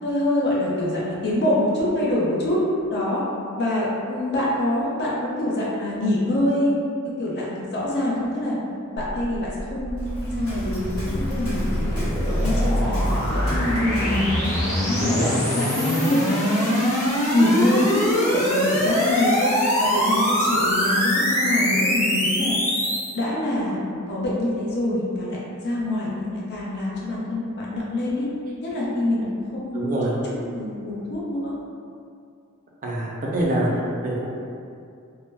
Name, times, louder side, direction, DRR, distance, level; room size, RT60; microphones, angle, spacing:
voice 1, 0.0-2.6 2.9-3.2 3.6-6.7 7.2-8.6 9.0-11.9 12.3-14.3 14.6-15.3 15.5-17.0 17.3-19.5 19.9-22.6 23.1-23.8 24.1-28.3 28.6-29.2 29.6-30.2 30.5-31.5, left 1 dB, 50° left, -6 dB, 0.6 m, -25 dB
sound 1, 9.0-23.1, equal, 15° left, 0.7 m, -23 dB
Waves surf, 10.0-15.2, equal, 80° left, 1.0 m, -34 dB
voice 2, 15.0-15.4 29.7-30.1 32.8-34.3, right 1 dB, 40° right, -4 dB, 0.4 m, -25 dB
2.1 x 2.1 x 3.3 m, 2.4 s
head